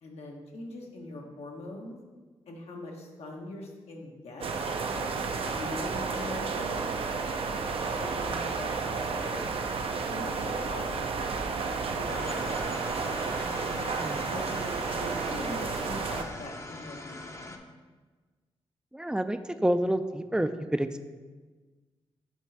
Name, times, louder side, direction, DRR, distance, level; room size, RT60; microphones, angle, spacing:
voice 1, 0.0-2.0 2.5-4.5 4.9-5.1 5.5-7.0 7.3-7.6 8.0-9.5 10.1-11.3 11.9-12.6 13.7-13.9 14.3-17.1 17.4-17.5, left 2 dB, 75° left, 0 dB, 1.1 m, -42 dB
sound 1, 4.4-16.2, right 4 dB, 60° right, 0.6 m, -32 dB
sound 2, 12.1-17.6, left 2 dB, 25° left, 0.6 m, -42 dB
voice 2, 18.9-21.0, right 1 dB, 5° right, 10 dB, 0.4 m, -28 dB
6.3 x 3.2 x 5.4 m, 1.4 s
cardioid pair, 65°, 10 cm